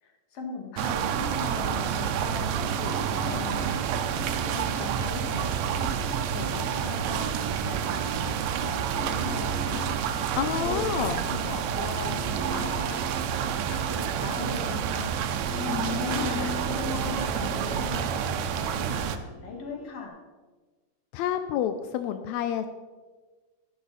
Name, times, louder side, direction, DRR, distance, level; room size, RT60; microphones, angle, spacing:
voice 1, 0.0-5.9 6.3-7.3 7.6-8.4 8.6-10.0 10.6-13.2 13.6-15.2 16.1-20.2, left 4 dB, 50° left, 2 dB, 2.4 m, -39 dB
sound 1, 0.8-19.2, right 8 dB, 75° right, 1.8 m, -29 dB
sound 2, 2.4-5.2 5.5-15.0 15.4-18.1 18.8-20.1, left 2 dB, 5° right, 1.7 m, -42 dB
voice 2, 10.4-11.2 15.7-16.4 21.1-22.7, left 10 dB, 80° left, 9 dB, 1.6 m, -29 dB
12.0 x 11.5 x 4.1 m, 1.3 s
omnidirectional pair, 3.7 m